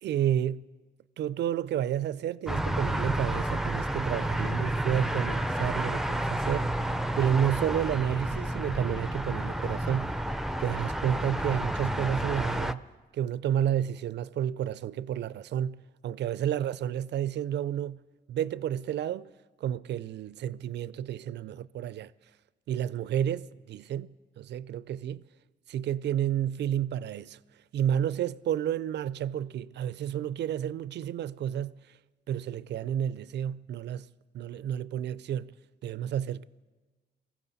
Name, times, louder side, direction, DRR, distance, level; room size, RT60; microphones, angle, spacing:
voice 1, 0.0-0.7 1.2-6.9 7.2-10.2 10.6-12.8 13.1-18.0 18.3-19.3 19.6-22.1 22.7-25.2 25.7-27.4 27.7-32.0 32.3-34.1 34.3-35.5 35.8-36.4, right 10 dB, 65° right, 0.4 m, -31 dB
sound 1, 2.5-12.7, right 1 dB, ahead, 0.5 m, -30 dB
22.5 x 15.0 x 4.1 m
cardioid pair, 85°, 19 cm